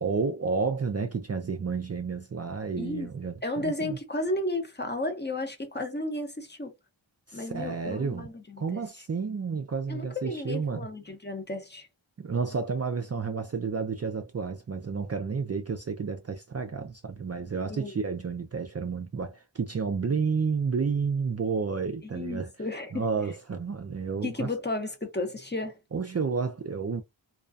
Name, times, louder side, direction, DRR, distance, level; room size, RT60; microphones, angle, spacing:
voice 1, 0.0-4.0 7.3-8.3 8.6-10.9 12.2-22.5 22.9-24.5 25.9-27.0, right 5 dB, 35° right, 0.4 m, -31 dB
voice 2, 2.8-3.1 3.4-6.7 7.3-8.8 9.9-11.9 17.7-17.9 22.1-23.0 24.2-25.8, left 2 dB, 25° left, 0.7 m, -33 dB
2.4 x 2.2 x 2.5 m
wide cardioid pair, 55°, 45 cm